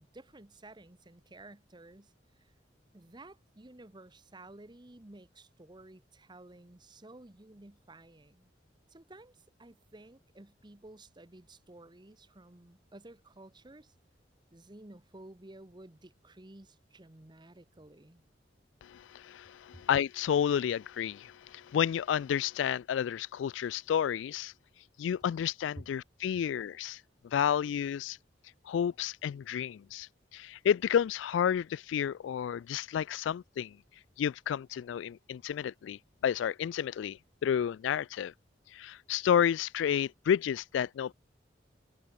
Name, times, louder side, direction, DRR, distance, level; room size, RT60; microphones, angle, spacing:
voice 1, 0.0-2.5 2.9-8.5 8.9-13.9 14.5-18.2 25.8-25.9, right 2 dB, 25° right, 1.1 m, -53 dB
voice 2, 18.8-24.5 25.0-28.2 28.7-33.8 34.2-38.3 38.7-41.1, left 8 dB, 85° left, 0.3 m, -31 dB
head